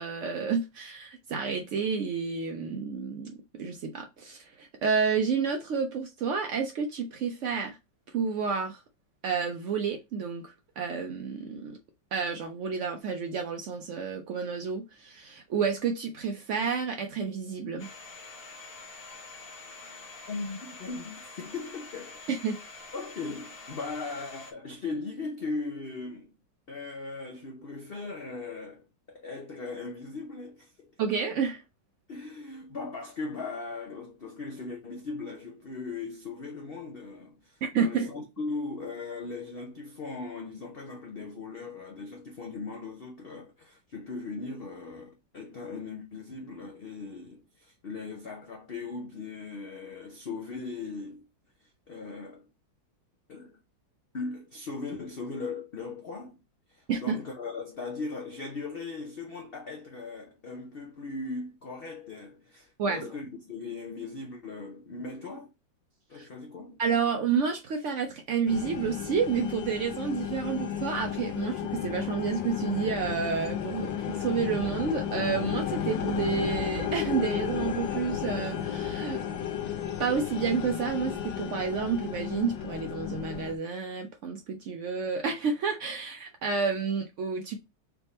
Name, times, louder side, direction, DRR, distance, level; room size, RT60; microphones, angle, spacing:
voice 1, 0.0-7.8 8.1-8.8 9.2-11.8 12.1-17.9 22.3-22.6 31.0-31.6 37.6-38.1 56.9-57.2 62.8-63.1 66.1-66.3 66.8-79.2 80.0-87.6, right 5 dB, 80° right, 0.6 m, -30 dB
Domestic sounds home sounds, 17.8-24.5, left 3 dB, 40° left, 1.0 m, -46 dB
voice 2, 20.3-22.2 22.9-26.3 26.7-31.0 32.1-51.3 51.6-52.5 53.3-53.6 54.1-56.4 56.7-65.5 66.1-66.8, left 3 dB, 65° left, 0.5 m, -38 dB
sound 1, 68.5-83.5, left 9 dB, 90° left, 1.4 m, -33 dB
3.5 x 3.5 x 4.0 m
omnidirectional pair, 2.0 m